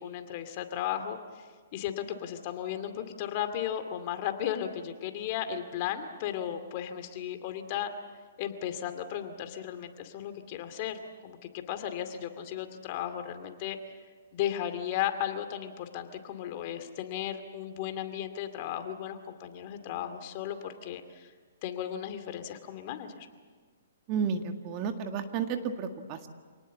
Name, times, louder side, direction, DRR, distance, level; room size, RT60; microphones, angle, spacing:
voice 1, 0.0-7.9 8.4-13.8 14.3-21.3 21.6-23.3, left 10 dB, 40° left, 8 dB, 2.3 m, -35 dB
voice 2, 24.1-26.3, right 6 dB, 30° right, 6 dB, 1.8 m, -32 dB
27.5 x 19.0 x 8.4 m, 1.5 s
hypercardioid pair, 150°, 0 cm